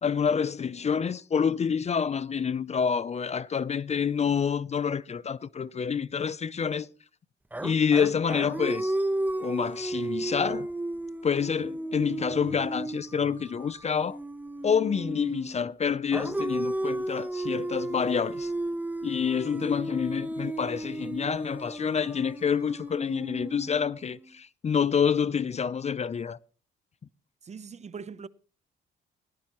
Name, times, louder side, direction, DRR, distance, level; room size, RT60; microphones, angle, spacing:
voice 1, 0.0-6.9 7.6-8.9 9.4-10.7 11.2-14.2 14.6-18.5 19.0-26.4, left 6 dB, 35° left, 0.5 m, -27 dB
sound 1, 7.5-15.6 16.1-24.2, right 1 dB, 10° right, 0.9 m, -34 dB
voice 2, 27.4-28.3, right 6 dB, 35° right, 0.7 m, -41 dB
18.0 x 16.0 x 3.0 m
cardioid pair, 90°, 20 cm